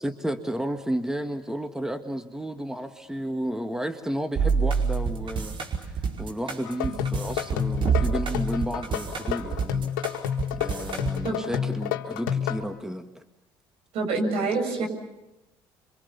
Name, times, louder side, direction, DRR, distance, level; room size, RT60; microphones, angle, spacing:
voice 1, 0.0-9.9 10.5-13.2, equal, 5° right, 7 dB, 1.8 m, -32 dB
sound 1, 4.4-11.2, right 5 dB, 50° right, 4.9 m, -27 dB
sound 2, 6.6-12.6, left 9 dB, 85° left, 1.5 m, -29 dB
voice 2, 11.2-11.6 13.9-14.9, right 3 dB, 70° right, 3 dB, 7.2 m, -27 dB
27.5 x 25.0 x 7.2 m, 0.95 s
hypercardioid pair, 65°, 11 cm